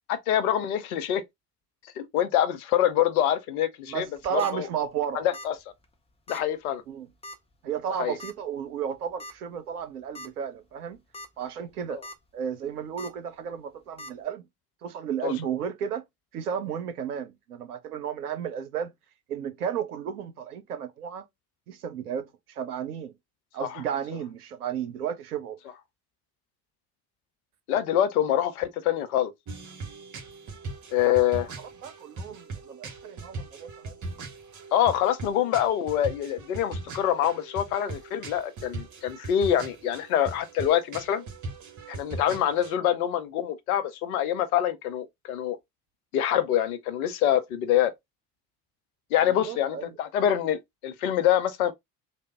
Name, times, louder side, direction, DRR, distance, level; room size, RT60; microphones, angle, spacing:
voice 1, 0.1-1.2 2.0-4.1 4.3-4.7 5.1-5.5 6.3-6.8 8.0-8.2 15.2-15.3 23.6-23.7 27.7-29.3 30.9-31.5 34.7-41.2 41.9-45.6 46.1-47.9 49.1-51.7, left 11 dB, 65° left, 0.7 m, -25 dB
voice 2, 3.9-5.3 6.9-7.1 7.6-11.0 11.4-12.0 12.3-14.5 14.8-16.0 16.3-18.9 19.3-21.2 21.7-23.1 23.5-25.6 31.2-31.3 31.6-34.0 49.3-49.9, right 8 dB, 75° right, 0.7 m, -33 dB
sound 1, 4.1-4.5 5.3-5.6 5.8-5.9 6.3-6.4 7.2-7.5 8.2-8.3 9.2-9.3 9.8-9.9 10.1-10.3 10.9-11.3 11.7-12.1 13.0-13.1 14.0-14.1, left 2 dB, 15° left, 0.7 m, -41 dB
sound 2, 29.5-42.7, right 3 dB, 40° right, 1.2 m, -40 dB
3.3 x 2.1 x 3.5 m
figure-of-eight pair, 55°, 46 cm